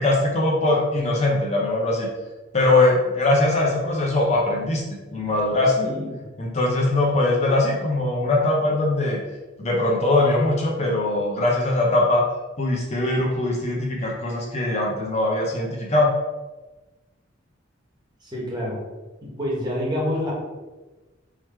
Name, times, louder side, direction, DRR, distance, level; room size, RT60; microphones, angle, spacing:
voice 1, 0.0-2.1 2.5-4.8 5.1-5.7 6.4-9.2 9.6-12.2 12.6-16.1, left 2 dB, 35° left, -2 dB, 0.7 m, -21 dB
voice 2, 5.8-6.3 18.2-18.8 19.2-20.3, left 1 dB, 25° right, -4 dB, 1.3 m, -28 dB
3.9 x 3.1 x 4.3 m, 1.2 s
head